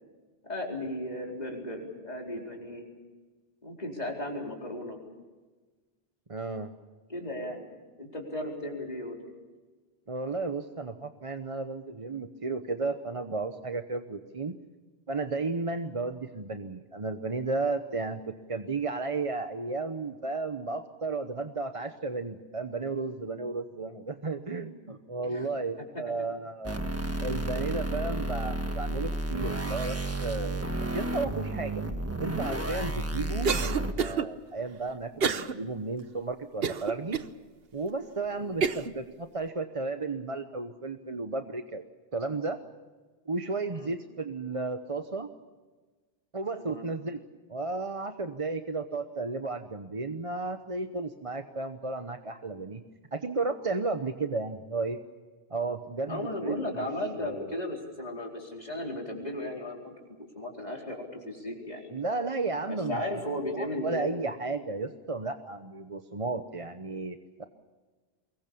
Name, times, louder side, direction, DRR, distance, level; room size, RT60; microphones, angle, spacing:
voice 1, 0.4-2.8 3.6-5.0 7.1-7.7 8.0-9.2 25.2-25.5 25.8-26.3 38.3-38.6 43.7-43.9 46.6-46.8 56.0-61.9 62.7-64.1, left 1 dB, 40° left, 0 dB, 4.5 m, -36 dB
voice 2, 6.3-6.7 10.1-14.6 15.1-26.8 27.2-31.8 32.2-37.2 37.7-41.8 42.1-42.6 43.3-45.3 46.3-47.2 47.5-52.8 53.1-55.0 55.5-56.8 57.3-57.5 61.9-63.0 63.5-67.4, right 3 dB, 35° right, 7 dB, 1.0 m, -33 dB
sound 1, 26.6-33.9, right 1 dB, 15° right, 1.4 m, -32 dB
Cough, 33.4-34.3 35.2-35.5 36.0-36.1 36.6-37.3 37.9-38.0 38.6-38.9, right 6 dB, 70° right, 1.2 m, -28 dB
24.0 x 22.0 x 7.0 m, 1.3 s
omnidirectional pair, 1.0 m